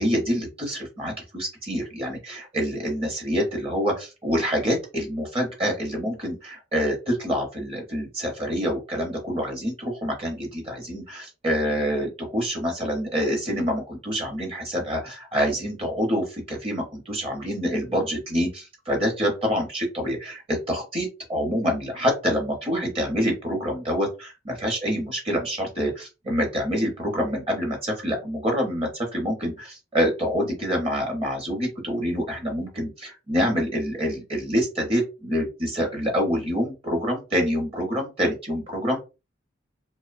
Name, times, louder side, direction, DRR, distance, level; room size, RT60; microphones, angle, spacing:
voice 1, 0.0-39.0, equal, 30° right, 1 dB, 0.8 m, -26 dB
2.5 x 2.1 x 2.5 m, 0.28 s
head